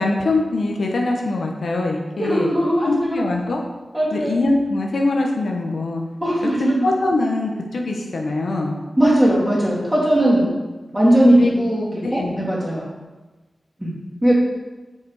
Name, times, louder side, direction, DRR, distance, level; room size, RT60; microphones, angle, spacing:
voice 1, 0.0-2.5 2.8-3.6 4.1-6.0 6.6-8.8 11.3-11.5 12.0-12.3, left 2 dB, 80° left, 1 dB, 0.9 m, -22 dB
voice 2, 2.2-3.2 3.9-4.3 6.2-6.9 9.0-10.5 10.9-12.9 13.8-13.9 14.2-14.5, right 1 dB, 5° right, -6 dB, 2.5 m, -18 dB
7.2 x 4.9 x 4.8 m, 1.2 s
wide cardioid pair, 105°, 0 cm